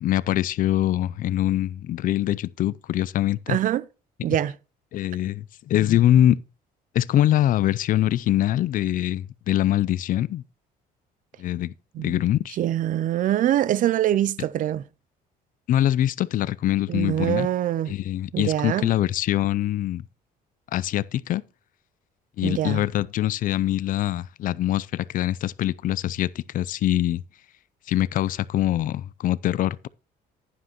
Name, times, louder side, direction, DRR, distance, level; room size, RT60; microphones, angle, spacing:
voice 1, 0.0-3.6 4.9-6.4 6.9-10.4 11.4-11.7 12.0-12.6 15.7-17.5 17.9-20.0 20.7-21.4 22.4-27.2 27.9-29.9, left 13 dB, 55° left, 0.4 m, -23 dB
voice 2, 3.5-3.8 4.2-4.5 11.9-12.2 12.6-14.8 16.9-17.9 18.3-18.9 22.4-22.8, right 12 dB, 50° right, 0.4 m, -24 dB
11.0 x 9.9 x 2.9 m
cardioid pair, 110°, 17 cm